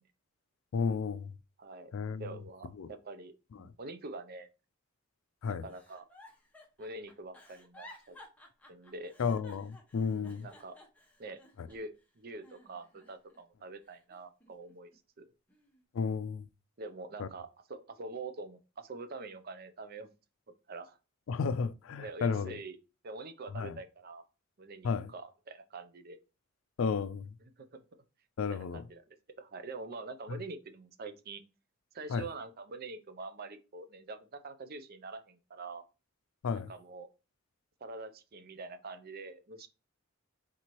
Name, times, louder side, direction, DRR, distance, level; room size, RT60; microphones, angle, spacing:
voice 1, 0.7-1.3 1.9-2.2 2.8-2.9 5.4-5.6 9.2-10.5 15.9-16.5 17.2-17.3 21.3-22.6 23.6-23.8 24.8-25.1 26.8-27.3 28.4-28.8 32.1-32.2 36.4-36.7, left 5 dB, 75° left, 0.4 m, -32 dB
voice 2, 1.6-1.9 2.2-4.5 5.5-6.1 6.8-8.2 8.7-9.1 10.1-10.8 11.2-11.4 11.7-14.9 15.2-15.3 16.8-20.1 20.7-21.0 22.0-22.8 23.0-24.2 24.6-26.2 27.6-27.8 28.5-29.0 29.4-31.4 31.9-35.8 36.5-37.1 37.8-39.7, right 3 dB, 50° right, 0.6 m, -45 dB
Giggle, 5.7-12.0 12.4-13.4 13.8-15.0 15.5-15.8, left 1 dB, 5° left, 0.9 m, -57 dB
4.5 x 3.8 x 3.0 m
head